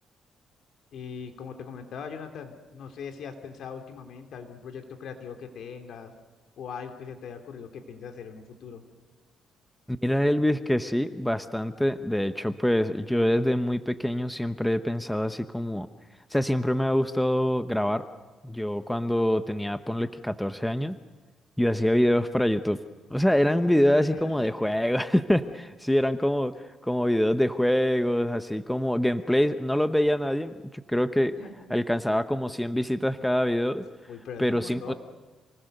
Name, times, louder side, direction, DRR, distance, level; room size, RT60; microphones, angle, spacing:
voice 1, 0.9-6.1 6.6-8.8 24.1-24.8 25.9-26.0 31.4-31.5 34.1-34.9, left 6 dB, 70° left, 5 dB, 2.9 m, -41 dB
voice 2, 9.9-15.9 16.3-18.0 18.4-21.0 21.6-22.8 23.1-26.5 26.9-30.5 30.9-31.3 31.7-33.8 34.4-34.9, equal, 5° left, 10 dB, 0.9 m, -25 dB
28.5 x 19.5 x 6.7 m, 1.3 s
cardioid pair, 90°, 0 cm